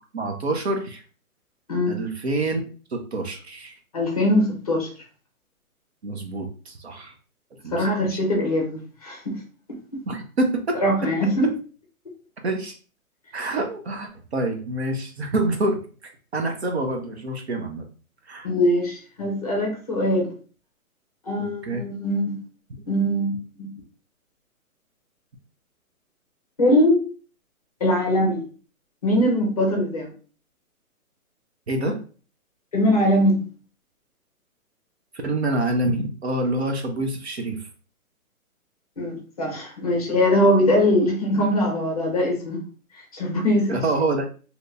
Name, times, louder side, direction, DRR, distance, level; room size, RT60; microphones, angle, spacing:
voice 1, 0.1-1.0 1.9-2.6 2.9-3.7 6.0-7.1 7.6-8.2 10.1-11.1 12.4-12.8 13.3-17.9 18.3-18.5 21.4-21.9 31.7-32.0 35.1-37.7 43.7-44.3, right 2 dB, 50° right, 4 dB, 0.6 m, -27 dB
voice 2, 3.9-4.9 7.7-9.4 9.7-9.8 10.8-11.5 18.4-20.3 21.3-22.4 22.9-23.7 26.6-27.0 27.8-28.4 29.0-30.1 32.7-33.5 39.0-42.6 42.9-43.8, left 1 dB, 25° left, -1 dB, 0.7 m, -22 dB
3.1 x 2.8 x 2.5 m, 0.38 s
hypercardioid pair, 165°, 43 cm